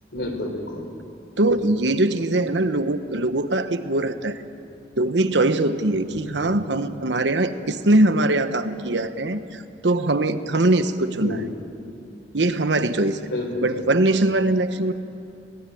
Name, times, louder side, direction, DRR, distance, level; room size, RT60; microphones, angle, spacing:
voice 1, 0.1-0.9 6.4-6.6 11.2-11.5 13.3-13.9, left 2 dB, 75° left, 5 dB, 4.1 m, -30 dB
voice 2, 1.4-4.4 5.0-11.4 12.3-13.2 13.6-14.9, right 2 dB, 80° right, 10 dB, 1.1 m, -22 dB
23.5 x 18.5 x 9.3 m, 2.6 s
head